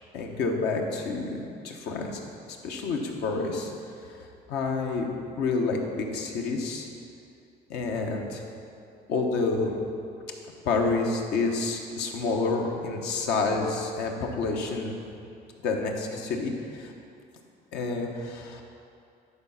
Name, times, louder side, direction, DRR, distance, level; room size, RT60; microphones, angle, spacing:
voice 1, 0.1-1.4 1.6-2.2 2.5-3.7 4.5-6.9 7.7-8.4 9.1-9.7 10.6-14.9 15.6-16.9 17.7-18.6, left 3 dB, 85° left, 1 dB, 1.0 m, -28 dB
10.5 x 4.1 x 5.6 m, 2.5 s
cardioid pair, 110°, 17 cm